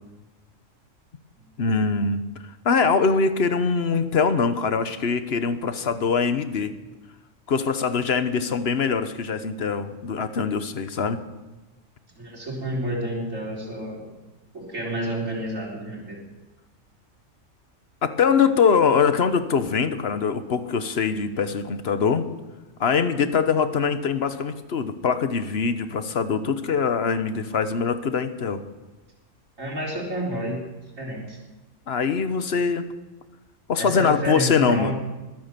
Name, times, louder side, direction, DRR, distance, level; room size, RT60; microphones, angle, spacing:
voice 1, 1.6-2.2 2.6-6.7 7.5-11.2 18.0-22.2 22.8-28.6 31.9-32.9 33.7-34.9, left 5 dB, 55° left, 10 dB, 1.2 m, -23 dB
voice 2, 12.2-14.0 14.5-16.2 29.6-30.6 31.0-31.4 33.8-34.9, right 1 dB, 80° right, -3 dB, 4.5 m, -30 dB
22.0 x 9.4 x 6.8 m, 1.1 s
omnidirectional pair, 1.3 m